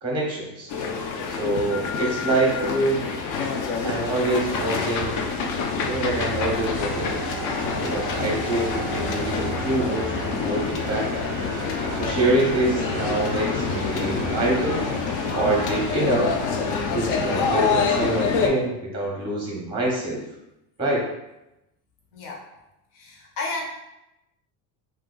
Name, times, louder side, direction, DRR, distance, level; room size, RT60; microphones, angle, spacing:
voice 1, 0.0-0.7 1.3-3.0 3.8-5.2 5.9-7.2 7.7-11.1 12.0-14.8 15.3-16.4 16.6-20.2 20.8-21.1, right 1 dB, 10° right, -3 dB, 0.7 m, -25 dB
sound 1, 0.7-18.5, left 5 dB, 50° left, 0.5 m, -27 dB
sound 2, 4.1-16.9, right 6 dB, 50° right, 0.4 m, -37 dB
voice 2, 22.1-22.5 22.9-23.7, left 3 dB, 75° left, -1 dB, 1.0 m, -32 dB
2.6 x 2.3 x 3.8 m, 0.91 s
cardioid pair, 130°, 40 cm